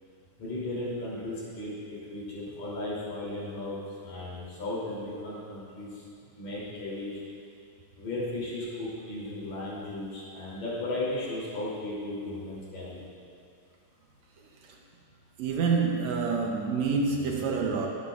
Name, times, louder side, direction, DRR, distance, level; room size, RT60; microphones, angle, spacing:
voice 1, 0.4-3.8 4.0-6.0 6.4-7.1 8.0-13.0, left 2 dB, 55° left, -7 dB, 4.2 m, -35 dB
voice 2, 15.4-17.9, right 4 dB, 75° right, 0 dB, 1.7 m, -27 dB
16.5 x 11.0 x 2.4 m, 2.4 s
omnidirectional pair, 3.9 m